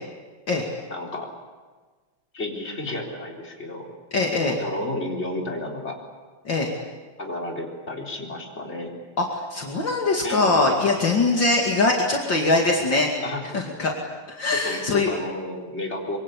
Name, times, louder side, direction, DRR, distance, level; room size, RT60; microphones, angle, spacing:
voice 1, 0.9-1.3 2.3-3.9 4.4-6.0 7.2-8.9 10.2-10.6 13.2-13.6 14.5-16.2, left 1 dB, 30° left, 0 dB, 4.2 m, -31 dB
voice 2, 4.1-4.6 6.4-6.7 9.2-13.1 13.5-13.9 14.3-15.1, left 3 dB, 55° left, 0 dB, 3.1 m, -22 dB
25.5 x 24.0 x 8.6 m, 1.4 s
omnidirectional pair, 2.4 m